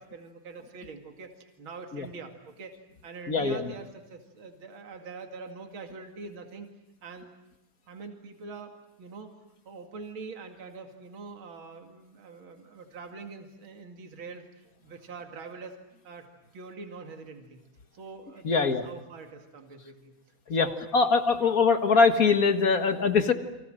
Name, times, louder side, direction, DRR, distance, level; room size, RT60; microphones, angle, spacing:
voice 1, 0.0-2.8 3.0-6.7 7.0-7.3 7.9-9.4 9.6-14.4 14.8-15.8 16.0-16.3 16.5-17.6 17.9-20.1 20.5-21.6, right 4 dB, 65° right, 4 dB, 3.0 m, -44 dB
voice 2, 3.3-3.6 18.4-18.8 20.5-20.7 20.9-23.3, left 4 dB, 45° left, 8 dB, 1.9 m, -22 dB
30.0 x 24.0 x 7.7 m, 0.91 s
omnidirectional pair, 2.4 m